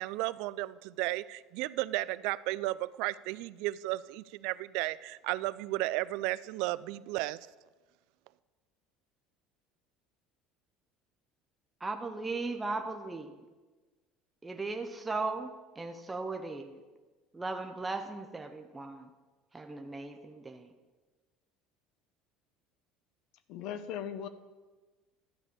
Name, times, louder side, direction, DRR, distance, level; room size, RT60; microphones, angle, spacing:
voice 1, 0.0-7.5, right 18 dB, 65° right, 18 dB, 0.3 m, -34 dB
voice 2, 11.8-13.4 14.4-16.8 17.3-19.1 19.5-20.7, right 3 dB, 10° right, 5 dB, 0.5 m, -37 dB
voice 3, 23.5-24.3, left 9 dB, 55° left, 12 dB, 0.6 m, -38 dB
12.0 x 5.3 x 8.3 m, 1.3 s
cardioid pair, 165°, 0 cm